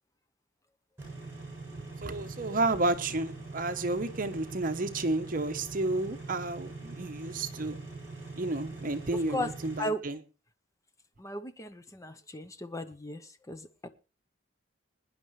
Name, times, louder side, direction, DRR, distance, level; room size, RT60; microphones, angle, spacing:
sound 1, 1.0-9.8, right 3 dB, 15° right, 7.8 m, -43 dB
voice 1, 2.0-7.8 8.4-10.2, right 2 dB, 45° right, 9 dB, 1.0 m, -31 dB
voice 2, 11.2-13.2 13.5-13.9, left 1 dB, 15° left, 10 dB, 0.8 m, -36 dB
21.5 x 10.5 x 3.2 m, 0.32 s
head